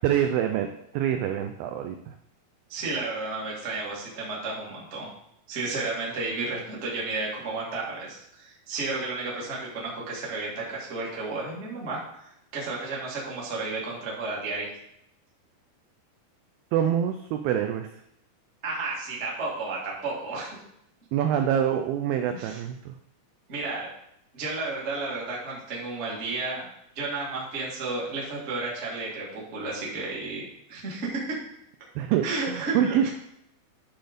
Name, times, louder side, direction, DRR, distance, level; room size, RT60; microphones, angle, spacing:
voice 1, 0.0-0.7 0.9-2.2 16.7-17.9 21.1-23.0 32.0-33.1, right 10 dB, 85° right, 6 dB, 2.1 m, -25 dB
voice 2, 2.7-5.1 5.5-12.2 12.5-14.7 18.6-20.6 22.3-22.6 23.5-23.9 24.3-26.7 26.9-30.4 30.7-31.4 32.2-33.1, right 3 dB, 60° right, -5 dB, 0.7 m, -32 dB
8.8 x 3.9 x 5.1 m, 0.76 s
omnidirectional pair, 4.7 m